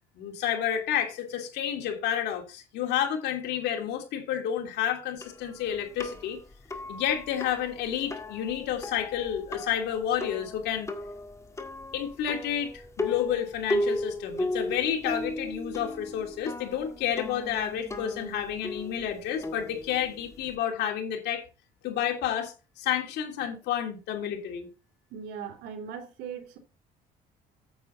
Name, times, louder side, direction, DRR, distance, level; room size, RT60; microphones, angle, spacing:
voice 1, 0.2-6.4 6.9-10.9 11.9-21.4 21.8-24.7, left 9 dB, 80° left, 2.9 m, -30 dB
sound 1, 5.2-20.6, left 1 dB, 15° left, 1.7 m, -36 dB
voice 2, 25.1-26.6, right 7 dB, 85° right, 2.9 m, -39 dB
9.4 x 8.2 x 4.0 m
cardioid pair, 110°, 17 cm